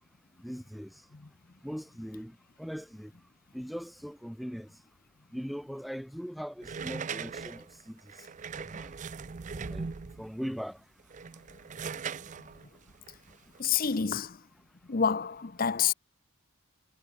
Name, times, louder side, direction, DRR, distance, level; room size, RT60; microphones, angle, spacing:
voice 1, 0.4-0.9 1.6-3.1 3.5-4.7 5.3-8.0 8.6-8.9 9.5-9.9 10.2-10.8, equal, ahead, 0.9 m, -40 dB
sound 1, 6.6-10.3 11.0-14.0, right 5 dB, 35° right, 0.4 m, -40 dB
voice 2, 13.6-14.4 14.9-15.9, left 7 dB, 40° left, 0.7 m, -28 dB
head